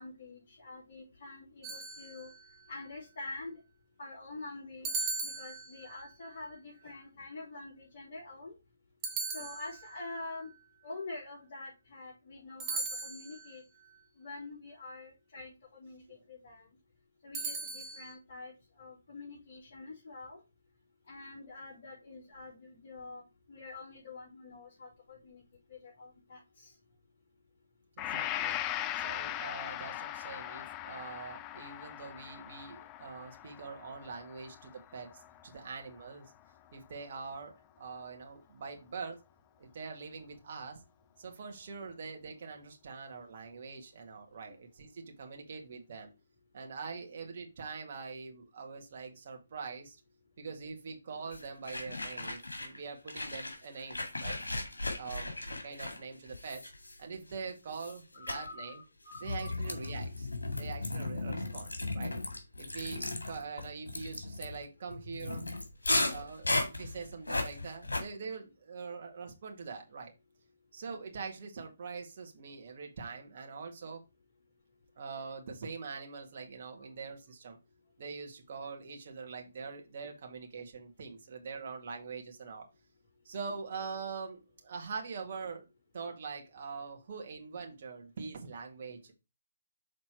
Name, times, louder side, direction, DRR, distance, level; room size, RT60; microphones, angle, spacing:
voice 1, 0.0-2.3 2.7-3.6 4.0-8.5 9.2-10.5 10.8-13.6 14.2-16.7 17.2-20.4 21.1-23.2 23.5-25.4 25.7-26.7 44.5-44.6 58.1-59.9 76.8-76.9, left 3 dB, 50° left, -8 dB, 3.9 m, -46 dB
sound 1, 1.6-2.6 4.8-6.1 9.0-10.1 12.6-13.6 17.3-18.1, right 4 dB, 20° right, 1.2 m, -38 dB
Gong, 28.0-36.0, left 13 dB, 20° left, 0.4 m, -40 dB
voice 2, 28.1-28.6 29.0-36.3 36.7-39.2 39.6-40.8 41.2-46.1 46.5-50.0 50.4-54.4 55.0-56.7 57.0-58.8 59.2-60.3 60.5-62.1 62.6-65.5 66.1-70.1 70.7-74.0 75.0-77.6 78.0-82.7 83.3-85.7 85.9-89.1, right 5 dB, 45° right, 2 dB, 2.0 m, -43 dB
sound 2, 51.3-52.8 53.1-57.3 57.7-58.0 58.3-58.5 59.1-68.0, left 2 dB, 85° left, 2.0 m, -36 dB
6.5 x 4.2 x 4.5 m, 0.27 s
figure-of-eight pair, 145°, 0 cm